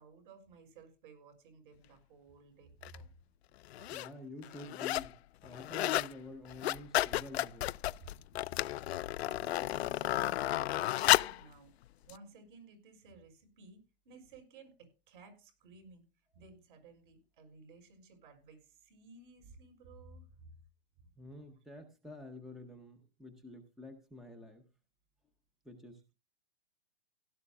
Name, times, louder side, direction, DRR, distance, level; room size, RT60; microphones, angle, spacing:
voice 1, 0.0-3.3 3.8-3.9 8.0-8.1 8.5-8.7 9.2-11.7 12.1-16.1 16.3-20.5 21.0-21.1, right 3 dB, 55° right, 5 dB, 6.0 m, -56 dB
sound 1, 2.8-3.0 3.6-4.1 4.4-5.1 5.4-6.1 6.4-11.4 12.1-12.2, left 14 dB, 85° left, 0.5 m, -32 dB
voice 2, 3.9-5.2 5.4-7.7 21.2-24.7 25.6-26.1, left 2 dB, ahead, 6 dB, 0.7 m, -49 dB
16.5 x 12.0 x 2.4 m, 0.31 s
hypercardioid pair, 160°, 31 cm